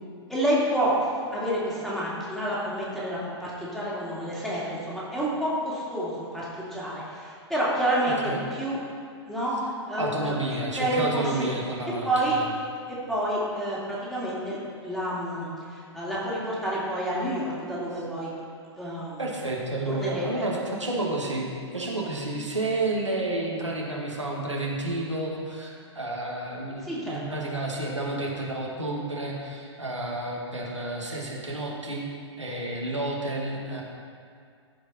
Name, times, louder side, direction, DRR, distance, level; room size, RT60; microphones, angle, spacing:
voice 1, 0.3-8.8 9.3-10.3 10.8-11.5 12.0-12.4 12.9-18.3 18.8-19.2 19.8-20.4 26.8-27.2, right 1 dB, ahead, -8 dB, 2.5 m, -29 dB
voice 2, 10.0-12.4 19.2-32.1 32.4-33.8, right 2 dB, 85° right, -3 dB, 1.6 m, -30 dB
14.0 x 5.1 x 4.2 m, 2.2 s
figure-of-eight pair, 105°, 15 cm